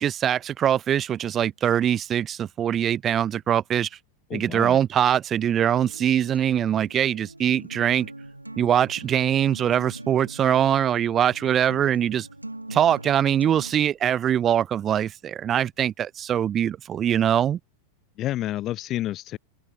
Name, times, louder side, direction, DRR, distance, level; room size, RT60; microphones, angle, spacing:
voice 1, 0.0-3.9 4.3-8.1 8.6-12.3 12.7-17.6, right 10 dB, 25° right, 0.5 m, -22 dB
voice 2, 4.3-4.8 18.2-19.4, left 14 dB, 35° left, 0.6 m, -29 dB
Acoustic guitar, 5.7-13.7, right 2 dB, 85° right, 0.8 m, -41 dB
open air
figure-of-eight pair, 90°, 0 cm